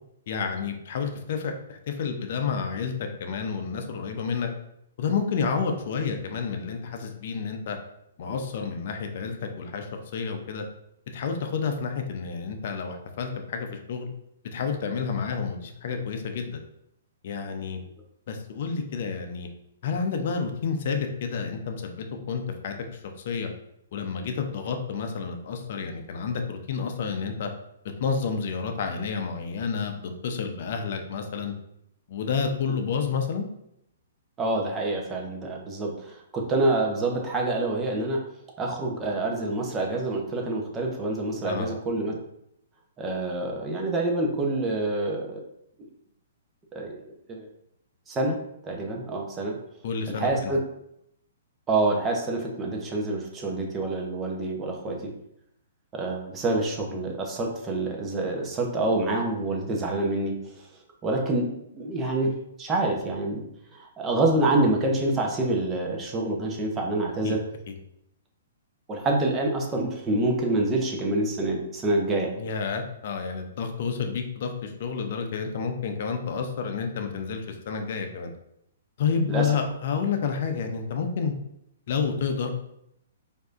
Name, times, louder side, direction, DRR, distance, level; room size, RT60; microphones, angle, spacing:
voice 1, 0.3-4.5 5.0-7.8 8.2-9.9 10.1-10.6 11.1-14.1 14.5-16.6 17.2-17.8 18.3-19.5 19.8-23.0 23.2-23.5 23.9-27.5 28.0-31.5 32.1-33.5 41.4-41.7 49.8-50.5 67.2-67.4 67.7-67.8 72.4-78.3 79.0-81.3 81.9-82.5, left 5 dB, 55° left, 5 dB, 0.6 m, -30 dB
voice 2, 34.4-38.2 38.6-42.2 43.0-45.4 46.7-46.9 47.3-47.5 48.1-48.4 48.6-49.6 50.2-50.6 51.7-55.1 55.9-60.7 61.0-62.3 62.6-63.4 63.7-67.4 68.9-72.3 79.3-79.5, right 2 dB, 20° right, 0 dB, 0.8 m, -27 dB
4.6 x 2.7 x 2.5 m, 0.77 s
figure-of-eight pair, 120°, 0 cm